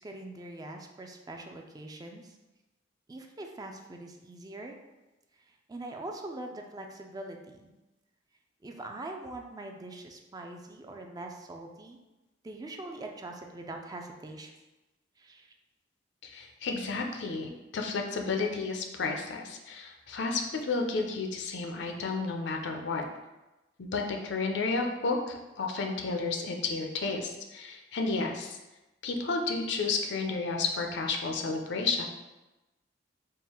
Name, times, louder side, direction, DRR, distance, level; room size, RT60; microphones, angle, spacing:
voice 1, 0.0-2.4 3.1-4.8 5.4-7.7 8.6-12.0 12.4-14.5 15.2-15.5, right 2 dB, 20° right, 3 dB, 0.3 m, -43 dB
voice 2, 16.2-23.0 23.8-28.6 29.0-32.0, left 4 dB, 70° left, 3 dB, 0.5 m, -32 dB
3.7 x 2.4 x 4.3 m, 1.0 s
head